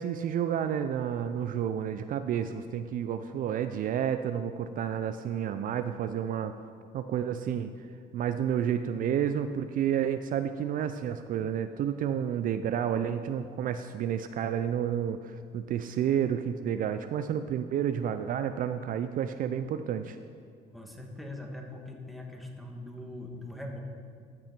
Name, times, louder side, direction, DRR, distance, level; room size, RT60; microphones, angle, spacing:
voice 1, 0.0-6.5 6.9-7.9 8.1-20.2, right 9 dB, 55° right, 10 dB, 0.4 m, -30 dB
voice 2, 20.7-23.8, left 1 dB, ahead, 1 dB, 1.3 m, -41 dB
13.5 x 6.1 x 4.4 m, 2.1 s
cardioid pair, 110°, 17 cm